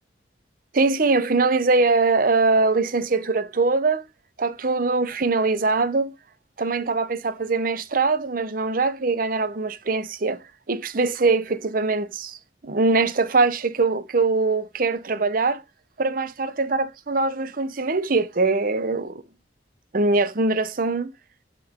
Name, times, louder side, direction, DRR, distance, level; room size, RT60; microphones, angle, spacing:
voice 1, 0.7-4.0 4.4-6.1 6.6-12.4 12.6-15.6 16.0-19.2 19.9-21.1, right 3 dB, 50° right, 0.7 m, -22 dB
11.0 x 3.8 x 3.6 m
head